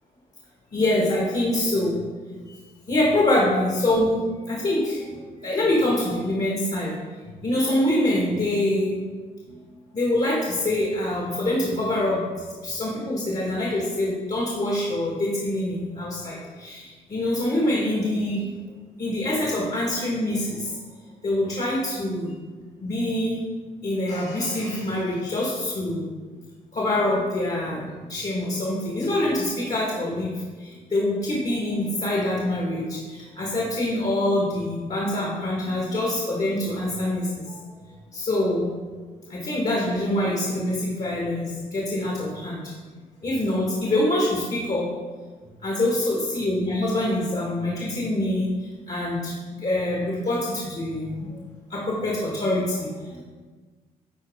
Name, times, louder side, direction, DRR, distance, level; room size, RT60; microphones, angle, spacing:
voice 1, 0.7-2.0 2.3-2.6 2.9-7.0 7.4-9.0 9.5-9.6 9.9-18.5 19.0-20.8 21.2-22.3 22.8-23.4 23.8-26.1 26.7-37.7 38.1-38.7 39.3-42.7 43.2-45.0 45.6-51.3 51.7-53.2, left 1 dB, 40° left, -3 dB, 1.8 m, -25 dB
10.5 x 4.2 x 3.7 m, 1.4 s
supercardioid pair, 65°, 18 cm